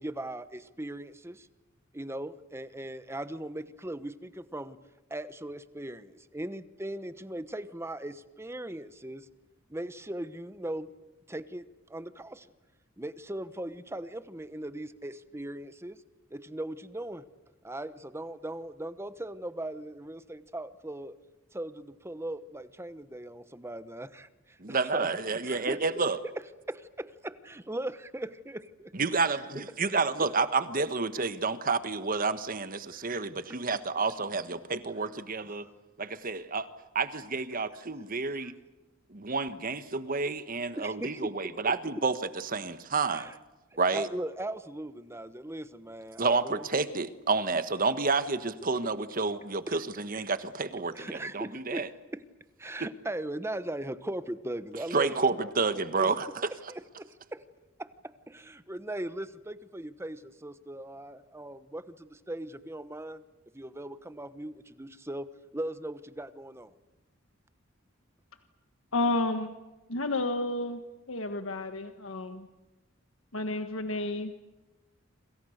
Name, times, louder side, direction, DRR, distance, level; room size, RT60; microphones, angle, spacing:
voice 1, 0.0-1.5 1.9-4.8 5.1-9.3 9.7-10.9 11.3-11.6 11.9-12.5 13.0-16.0 16.3-17.2 17.6-21.2 21.5-25.8 26.7-28.9 32.9-33.1 35.5-35.7 38.4-38.5 40.8-41.5 42.0-42.1 43.1-43.4 43.7-46.6 49.7-49.8 50.9-51.8 52.1-52.2 52.6-56.1 56.7-57.4 57.8-63.2 63.5-66.7, right 1 dB, 15° right, 13 dB, 1.0 m, -39 dB
voice 2, 24.6-26.2 29.0-35.6 36.0-36.7 36.9-38.5 39.1-43.3 43.8-44.1 46.2-51.9 52.8-52.9 54.9-56.3, right 4 dB, 45° right, 12 dB, 1.4 m, -30 dB
voice 3, 68.9-69.5 69.9-70.8 71.1-72.5 73.3-74.3, left 2 dB, 80° left, 7 dB, 1.5 m, -31 dB
27.5 x 26.5 x 6.6 m, 1.1 s
head